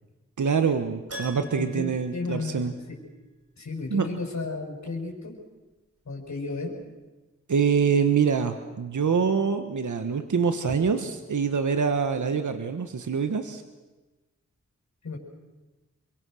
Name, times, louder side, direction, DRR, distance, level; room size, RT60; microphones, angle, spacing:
voice 1, 0.4-2.7 3.9-4.1 7.5-13.6, right 6 dB, 80° right, 8 dB, 1.4 m, -25 dB
Keyboard (musical), 1.1-3.1 3.4-3.5 6.2-6.3 6.5-6.6, equal, 55° right, 6.2 m, -43 dB
voice 2, 1.4-2.7 3.6-5.4 6.0-6.7 15.0-15.2, left 3 dB, 70° left, 0 dB, 6.1 m, -33 dB
28.0 x 23.5 x 6.5 m, 1.1 s
wide cardioid pair, 70°, 30 cm